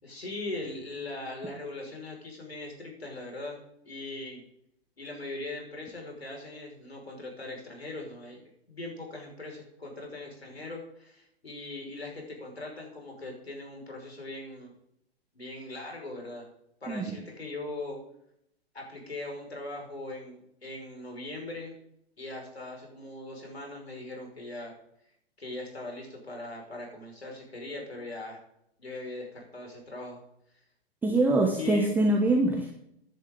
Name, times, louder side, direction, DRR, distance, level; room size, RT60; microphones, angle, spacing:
voice 1, 0.0-3.6 3.8-4.4 5.0-14.7 15.3-16.5 16.8-18.0 18.7-21.7 22.2-24.7 25.4-28.4 28.8-30.2 31.5-31.9, left 2 dB, 80° left, 0 dB, 5.5 m, -40 dB
voice 2, 31.0-32.7, right 2 dB, 5° right, 2 dB, 1.0 m, -24 dB
15.0 x 10.5 x 3.9 m, 0.74 s
figure-of-eight pair, 120°, 31 cm